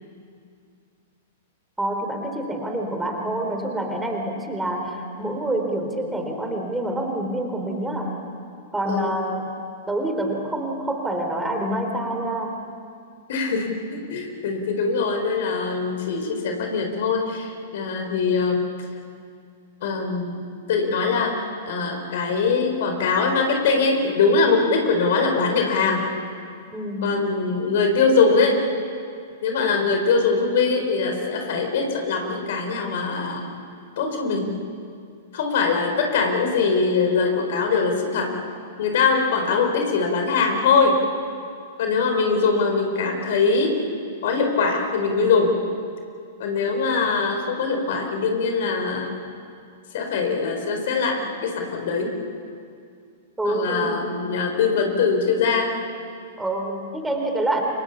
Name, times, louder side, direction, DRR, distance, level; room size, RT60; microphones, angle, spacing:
voice 1, 1.8-8.1 8.7-9.5 9.9-12.6 26.7-27.2 53.4-54.1 56.4-57.6, right 1 dB, 5° right, 2 dB, 3.9 m, -27 dB
voice 2, 8.9-9.2 13.3-18.7 19.8-20.4 20.7-26.1 27.0-28.6 29.4-33.5 34.0-34.6 35.3-38.3 38.8-41.0 41.8-43.8 44.2-45.6 46.4-49.2 49.9-52.1 53.4-55.8, left 4 dB, 60° left, 3 dB, 4.3 m, -22 dB
30.0 x 25.0 x 7.1 m, 2.3 s
figure-of-eight pair, 105°, 0 cm